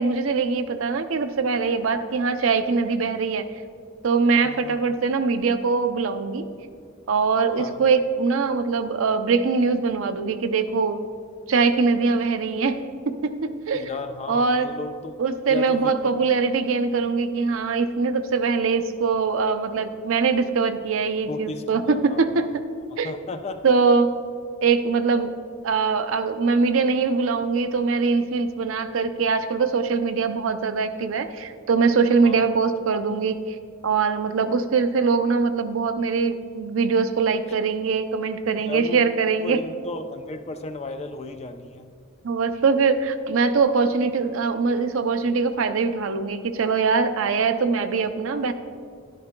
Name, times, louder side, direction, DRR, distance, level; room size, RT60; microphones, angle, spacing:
voice 1, 0.0-3.5 4.0-6.5 7.1-11.1 11.5-13.9 14.3-14.7 15.2-22.6 23.0-23.1 23.6-24.1 24.6-25.3 25.6-33.6 33.8-39.6 42.2-48.5, right 4 dB, 70° right, 9 dB, 0.5 m, -22 dB
voice 2, 4.4-4.8 7.6-7.8 13.7-15.1 15.5-16.0 21.3-22.5 22.9-23.7 32.2-32.5 38.6-39.0 39.4-41.9, left 2 dB, 30° left, 8 dB, 0.4 m, -35 dB
11.0 x 10.5 x 2.2 m, 2.2 s
head